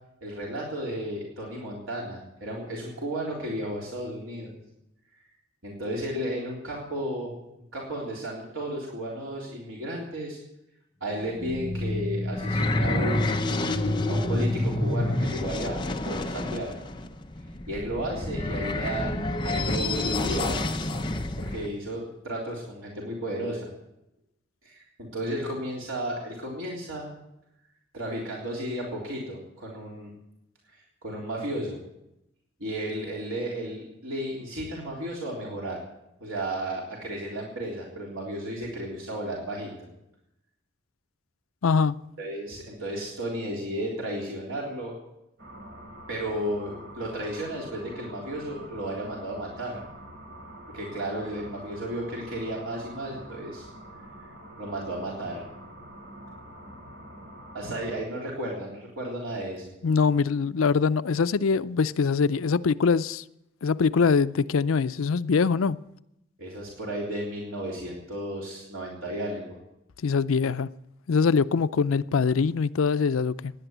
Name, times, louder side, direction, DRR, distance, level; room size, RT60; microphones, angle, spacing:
voice 1, 0.2-4.5 5.6-7.3 7.7-10.4 11.0-13.4 13.8-16.8 17.7-20.7 21.4-23.7 24.6-27.1 27.9-30.1 30.7-31.8 32.6-35.8 36.2-39.9 42.2-45.0 46.1-49.8 50.7-53.7 54.2-54.3 54.6-55.4 57.5-59.7 66.4-69.6, right 1 dB, 85° right, 3.6 m, -33 dB
sound 1, 11.2-21.7, left 2 dB, 20° left, 0.7 m, -28 dB
voice 2, 41.6-42.0 59.8-63.2 63.6-65.8 70.0-70.7 71.1-73.5, left 5 dB, 90° left, 0.5 m, -23 dB
sound 2, 45.4-58.0, right 1 dB, 55° right, 3.4 m, -45 dB
17.0 x 10.5 x 8.0 m
head